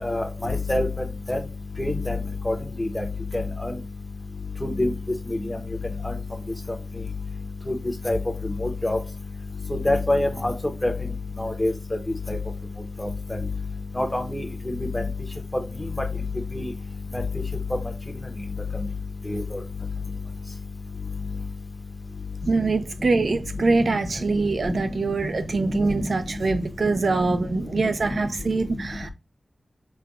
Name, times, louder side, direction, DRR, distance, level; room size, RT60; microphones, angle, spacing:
voice 1, 0.0-0.9 1.3-1.4 1.8-2.2 2.5-3.0 3.6-3.7 4.8-4.9 6.0-6.1 8.0-8.2 8.6-9.0 9.8-10.5 10.8-10.9 11.4-11.7 12.3-12.4 13.0-13.1 14.0-14.4 14.9-15.0 16.5-16.6 19.3-19.4 24.7-24.8, left 2 dB, 20° left, 0.8 m, -24 dB
voice 2, 22.5-29.1, right 3 dB, 75° right, 0.4 m, -24 dB
5.1 x 2.2 x 2.4 m
cardioid pair, 45°, 0 cm